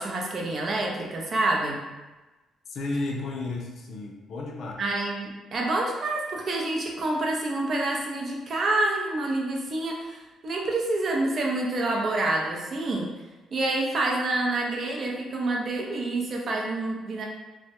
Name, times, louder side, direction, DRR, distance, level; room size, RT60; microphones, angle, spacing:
voice 1, 0.0-1.8 4.8-13.1 13.5-17.3, right 2 dB, 50° right, -1 dB, 0.5 m, -27 dB
voice 2, 2.7-4.7, left 2 dB, 65° left, 0 dB, 0.4 m, -32 dB
2.2 x 2.0 x 2.8 m, 1.1 s
cardioid pair, 90°, 0 cm